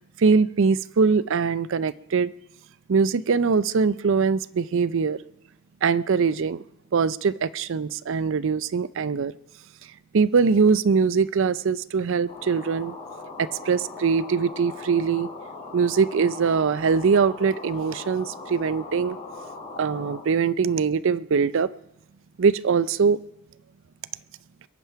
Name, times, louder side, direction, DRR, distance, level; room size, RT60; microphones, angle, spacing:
voice 1, 0.0-2.3 2.9-5.2 5.8-6.6 6.9-9.3 10.1-12.9 13.4-15.3 15.7-19.2 19.8-21.7 22.4-23.2, right 5 dB, 60° right, 0.5 m, -22 dB
sound 1, 12.3-20.2, left 3 dB, 30° left, 3.9 m, -40 dB
22.0 x 9.4 x 5.7 m
head